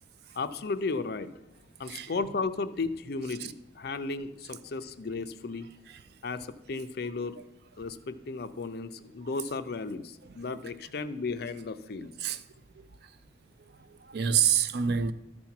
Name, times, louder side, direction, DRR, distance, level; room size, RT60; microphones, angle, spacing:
voice 1, 0.4-1.4 1.8-5.7 6.2-7.4 7.8-12.2, left 4 dB, 55° left, 0.5 m, -34 dB
voice 2, 13.9-15.1, right 8 dB, 60° right, 0.4 m, -28 dB
13.0 x 4.4 x 5.7 m
head